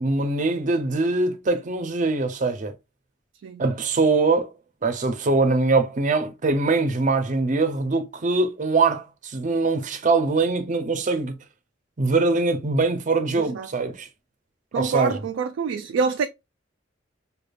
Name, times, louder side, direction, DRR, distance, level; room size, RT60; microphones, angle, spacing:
voice 1, 0.0-2.7 3.6-4.5 4.8-11.3 12.0-14.1 14.8-15.2, right 3 dB, 40° right, 0.6 m, -22 dB
voice 2, 13.3-13.7 14.7-16.3, right 5 dB, 80° right, 0.3 m, -26 dB
5.0 x 2.3 x 2.3 m
head